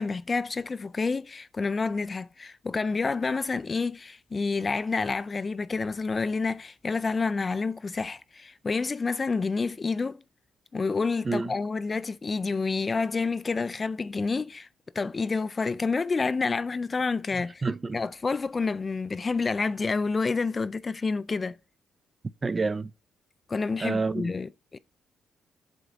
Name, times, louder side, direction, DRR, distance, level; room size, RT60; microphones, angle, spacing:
voice 1, 0.0-10.2 10.7-14.7 15.0-17.6 17.9-21.6 23.5-24.8, left 4 dB, 30° left, 0.3 m, -29 dB
voice 2, 11.2-11.6 17.6-18.0 22.4-22.9 23.8-24.3, right 3 dB, 30° right, 0.5 m, -28 dB
7.8 x 3.9 x 6.1 m
cardioid pair, 90°, 0 cm